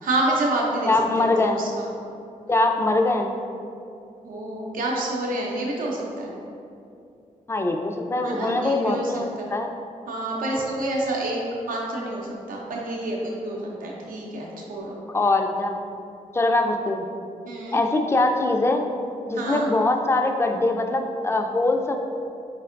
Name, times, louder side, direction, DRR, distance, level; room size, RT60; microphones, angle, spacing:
voice 1, 0.0-1.9 4.2-6.3 8.2-9.5 10.1-11.4 11.7-15.0 17.5-17.8 19.3-19.7, right 1 dB, 90° right, -2 dB, 0.6 m, -28 dB
voice 2, 0.9-1.6 2.5-3.3 7.5-9.2 9.5-9.7 15.1-15.7 16.3-17.1 17.7-18.8 19.3-22.0, left 2 dB, 20° left, 4 dB, 0.3 m, -22 dB
4.3 x 3.3 x 2.5 m, 2.6 s
cardioid pair, 70°, 14 cm